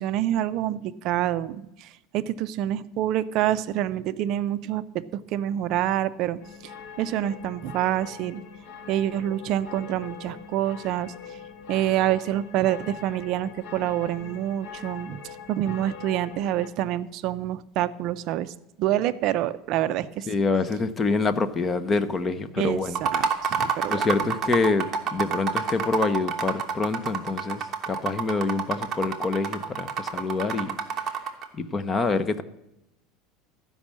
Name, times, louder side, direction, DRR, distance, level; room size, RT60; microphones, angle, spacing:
voice 1, 0.0-4.8 5.1-6.7 7.0-8.4 8.9-11.4 11.7-18.5 18.8-20.3 22.6-24.0, right 12 dB, 45° right, 0.4 m, -27 dB
sound 1, 6.4-16.7, left 6 dB, 65° left, 1.4 m, -43 dB
voice 2, 20.3-23.0 23.9-30.8 31.5-32.4, left 3 dB, 15° left, 0.5 m, -26 dB
sound 2, 22.9-31.5, right 6 dB, 25° right, 1.1 m, -28 dB
13.0 x 5.3 x 7.2 m
cardioid pair, 165°, 0 cm